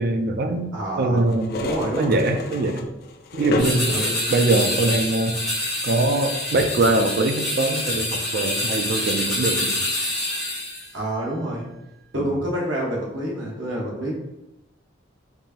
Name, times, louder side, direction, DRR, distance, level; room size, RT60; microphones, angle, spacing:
voice 1, 0.0-2.9 3.3-3.9 4.3-5.4 5.8-9.9 12.2-12.4, right 2 dB, 50° right, 6 dB, 0.4 m, -23 dB
voice 2, 0.7-1.3 1.6-2.3 3.9-4.3 10.9-11.7 12.1-14.1, right 1 dB, 80° right, -3 dB, 1.2 m, -27 dB
sound 1, 1.2-4.3 4.9-5.3 6.0-6.2, left 2 dB, 55° left, 0.4 m, -30 dB
sound 2, 3.6-10.9, left 1 dB, 5° left, 1.4 m, -26 dB
4.6 x 2.6 x 2.8 m, 0.90 s
head